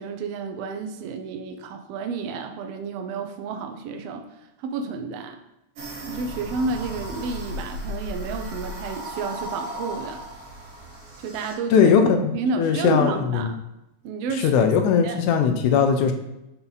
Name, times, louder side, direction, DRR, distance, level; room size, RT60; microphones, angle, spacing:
voice 1, 0.0-4.3 4.6-5.4 6.1-10.2 11.2-11.9 12.3-13.5 14.0-14.7 15.0-15.2, right 4 dB, 75° right, 5 dB, 1.5 m, -30 dB
sound 1, 5.8-11.5, equal, 50° right, 2.1 m, -35 dB
voice 2, 11.7-13.5 14.3-16.1, left 6 dB, 85° left, 5 dB, 2.2 m, -19 dB
6.0 x 5.5 x 4.0 m, 0.90 s
omnidirectional pair, 3.5 m